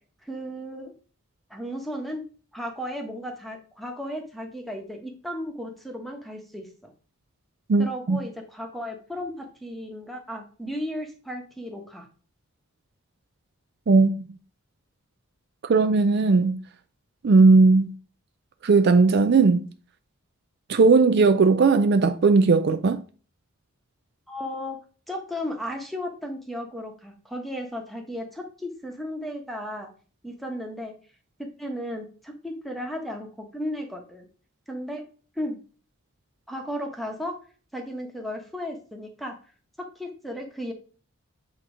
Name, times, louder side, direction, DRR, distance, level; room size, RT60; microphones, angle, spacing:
voice 1, 0.2-0.9 1.5-2.2 2.5-6.9 7.8-12.1 24.3-24.8 25.1-29.9 30.2-30.9 31.4-34.3 34.7-35.0 35.3-35.6 36.5-37.3 37.7-39.3 39.8-40.7, equal, ahead, 1.1 m, -35 dB
voice 2, 7.7-8.2 13.9-14.2 15.6-16.6 17.2-17.9 18.6-19.7 20.7-23.0, right 4 dB, 50° right, 0.4 m, -18 dB
8.4 x 2.9 x 4.9 m
head